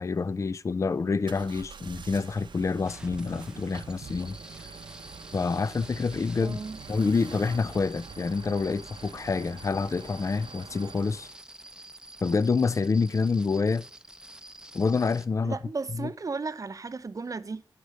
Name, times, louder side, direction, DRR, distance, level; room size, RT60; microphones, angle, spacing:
voice 1, 0.0-4.4 5.3-6.6 6.9-11.3 12.2-13.9 14.7-15.6 16.0-16.1, left 4 dB, 40° left, 0.4 m, -27 dB
sound 1, 1.2-11.4, right 6 dB, 80° right, 0.8 m, -45 dB
sound 2, 2.8-15.3, right 1 dB, 10° right, 0.7 m, -48 dB
voice 2, 6.4-6.8 15.4-17.6, right 4 dB, 45° right, 0.8 m, -35 dB
9.8 x 5.2 x 6.5 m
cardioid pair, 60°, 8 cm